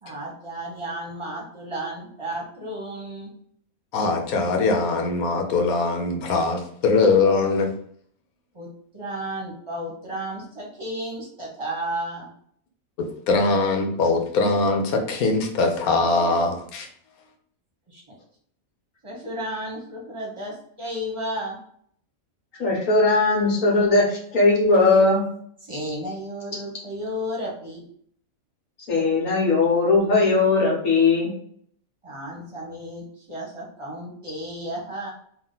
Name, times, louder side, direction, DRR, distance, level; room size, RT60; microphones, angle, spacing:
voice 1, 0.0-3.3 8.5-12.3 17.9-18.1 19.0-21.6 25.7-27.8 32.0-35.1, right 1 dB, 25° right, -2 dB, 1.0 m, -33 dB
voice 2, 3.9-7.7 13.0-16.9, left 3 dB, 90° left, 3 dB, 1.2 m, -22 dB
voice 3, 22.6-25.2 28.9-31.3, left 3 dB, 65° left, -4 dB, 1.6 m, -19 dB
3.7 x 2.4 x 3.8 m, 0.63 s
omnidirectional pair, 1.5 m